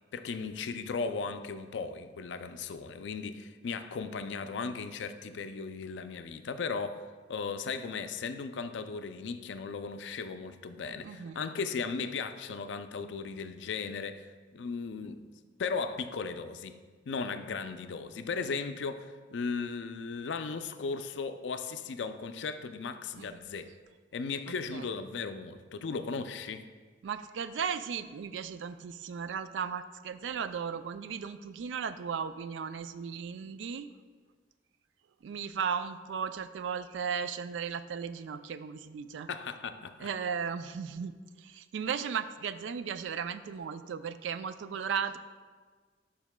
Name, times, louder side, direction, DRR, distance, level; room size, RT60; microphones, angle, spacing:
voice 1, 0.1-7.0 7.3-15.2 15.6-16.8 17.1-23.7 24.1-26.7 39.3-40.1, left 5 dB, 75° left, 9 dB, 0.4 m, -36 dB
voice 2, 11.0-11.4 23.2-23.5 24.7-24.9 27.0-33.9 35.2-39.3 40.0-41.1 41.4-45.2, right 6 dB, 90° right, 12 dB, 0.3 m, -36 dB
12.0 x 5.0 x 2.2 m, 1.5 s
head